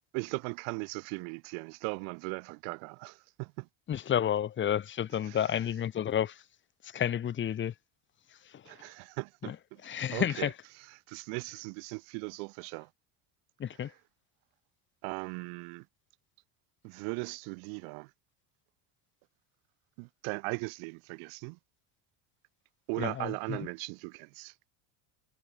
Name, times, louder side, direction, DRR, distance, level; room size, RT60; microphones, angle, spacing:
voice 1, 0.1-3.7 5.2-5.5 8.7-9.8 10.1-12.9 13.7-14.0 15.0-15.8 16.8-18.1 20.0-21.6 22.9-24.5, right 40 dB or more, 85° right, 0.9 m, -38 dB
voice 2, 3.9-6.4 6.8-7.7 8.5-8.6 9.4-9.6 9.8-10.5 13.6-13.9 23.0-23.7, left 9 dB, 25° left, 0.9 m, -31 dB
cardioid pair, 155°, 49 cm